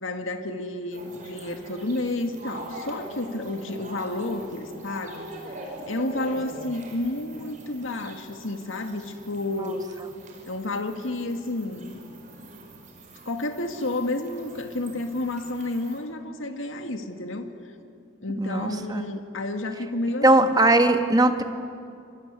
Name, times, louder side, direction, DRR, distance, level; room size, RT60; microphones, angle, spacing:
voice 1, 0.0-5.6 5.9-9.9 10.5-12.0 13.3-17.5 18.2-20.5, left 2 dB, 75° left, 6 dB, 2.0 m, -31 dB
sound 1, 0.9-16.0, right 1 dB, 40° right, 5.4 m, -43 dB
voice 2, 18.4-19.0 20.2-21.4, right 2 dB, 20° right, 6 dB, 1.5 m, -19 dB
25.5 x 23.5 x 9.8 m, 2.5 s
head